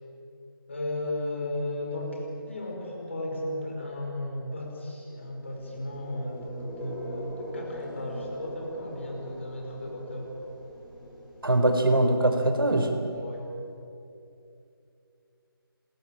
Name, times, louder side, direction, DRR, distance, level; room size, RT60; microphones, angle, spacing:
voice 1, 0.7-10.3 13.1-13.5, left 1 dB, 30° left, 0 dB, 5.3 m, -35 dB
sound 1, 5.3-13.4, equal, ahead, 2.1 m, -42 dB
voice 2, 11.4-12.9, right 1 dB, 65° right, 6 dB, 4.1 m, -22 dB
24.0 x 22.0 x 8.9 m, 2.6 s
figure-of-eight pair, 180°, 12 cm